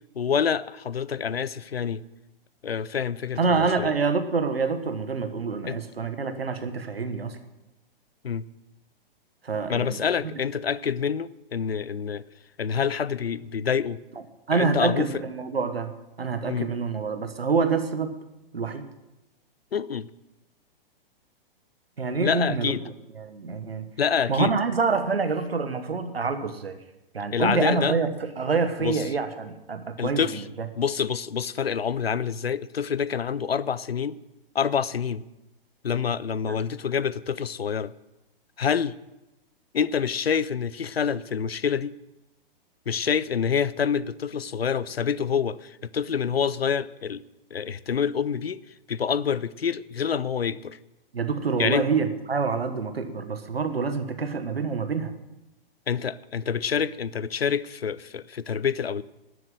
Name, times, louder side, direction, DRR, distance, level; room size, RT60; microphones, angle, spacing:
voice 1, 0.2-2.0 2.6-3.9 5.6-5.8 8.2-8.4 9.7-12.2 12.6-14.0 14.5-15.1 16.5-16.7 19.7-20.1 22.2-22.8 24.0-24.5 27.3-28.0 28.8-29.0 30.0-30.5 30.8-34.2 34.5-35.2 35.8-37.9 38.6-38.9 39.7-41.9 42.9-47.2 47.5-48.6 48.9-50.8 51.6-51.9 55.9-59.0, left 7 dB, 90° left, 19 dB, 0.5 m, -27 dB
voice 2, 3.4-7.4 9.4-10.0 14.5-15.9 16.2-18.1 18.5-18.8 22.0-22.7 23.2-23.9 24.3-26.8 27.1-30.7 36.4-36.5 51.1-55.1, right 4 dB, 80° right, 9 dB, 1.4 m, -26 dB
12.5 x 7.8 x 7.7 m, 0.95 s
figure-of-eight pair, 115°, 30 cm